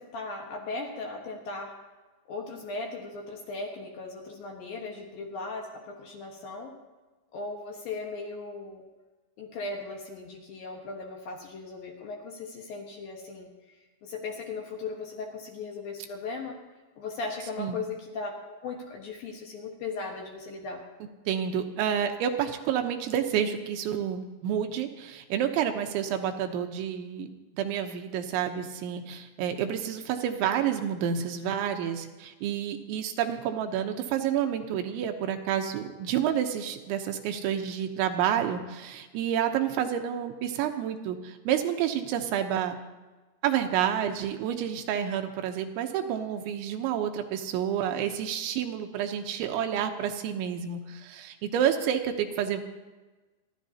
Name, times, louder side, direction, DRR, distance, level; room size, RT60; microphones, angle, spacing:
voice 1, 0.0-1.7 2.3-6.7 7.3-8.8 9.4-13.5 14.0-16.6 17.0-20.8, left 3 dB, 65° left, 0 dB, 2.6 m, -37 dB
voice 2, 21.3-27.3 27.5-42.8 43.4-52.6, right 9 dB, 80° right, 5 dB, 3.2 m, -29 dB
28.0 x 11.5 x 2.8 m, 1.2 s
omnidirectional pair, 5.5 m